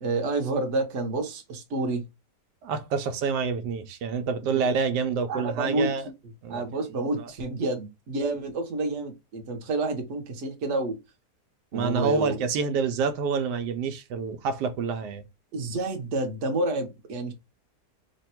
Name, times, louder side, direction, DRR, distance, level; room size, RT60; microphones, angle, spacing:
voice 1, 0.0-2.0 5.3-5.9 6.5-11.0 11.7-12.4 15.5-17.3, right 2 dB, 50° right, 1.1 m, -29 dB
voice 2, 2.6-6.1 6.4-6.6 6.9-7.3 11.7-15.2, right 5 dB, 90° right, 1.2 m, -27 dB
3.3 x 2.2 x 4.3 m
omnidirectional pair, 1.8 m